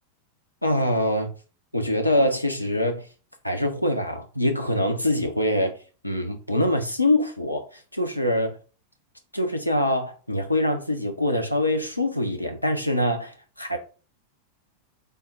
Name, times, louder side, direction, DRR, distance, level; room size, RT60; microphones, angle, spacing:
voice 1, 0.6-1.3 1.7-3.0 3.4-5.7 6.0-7.7 7.9-8.6 9.3-13.8, left 1 dB, 85° left, 0.6 m, -24 dB
3.5 x 2.1 x 4.2 m
figure-of-eight pair, 90°, 0 cm